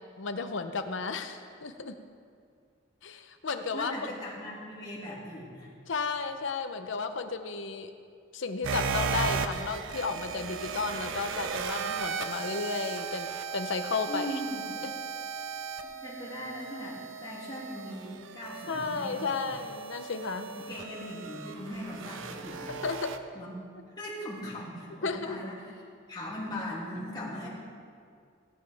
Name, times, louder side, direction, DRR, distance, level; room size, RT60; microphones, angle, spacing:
voice 1, 0.2-1.9 3.0-3.9 5.9-7.9 8.3-14.3 14.8-14.9 18.7-20.5 22.8-23.2 25.0-25.4, left 4 dB, 65° left, 8 dB, 0.7 m, -33 dB
voice 2, 3.7-5.7 14.1-14.6 15.8-19.7 20.5-22.8 23.3-23.6 23.9-25.8 26.1-27.5, equal, 20° left, -6 dB, 2.7 m, -39 dB
sound 1, 8.6-23.2, right 5 dB, 75° right, 0.6 m, -36 dB
16.5 x 9.1 x 3.5 m, 2.2 s
head